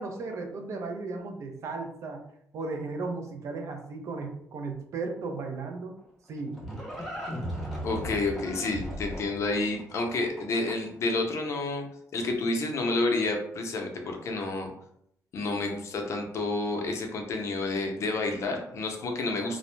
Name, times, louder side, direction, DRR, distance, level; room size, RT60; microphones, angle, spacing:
voice 1, 0.0-2.2 2.5-6.0 6.3-6.6, right 3 dB, 55° right, 4 dB, 0.5 m, -35 dB
Livestock farm animals working animals, 6.0-11.0, equal, ahead, 0.7 m, -37 dB
voice 2, 7.8-11.8 12.1-14.7 15.3-19.6, left 2 dB, 50° left, 3 dB, 0.5 m, -29 dB
2.5 x 2.0 x 3.1 m, 0.71 s
cardioid pair, 150°, 6 cm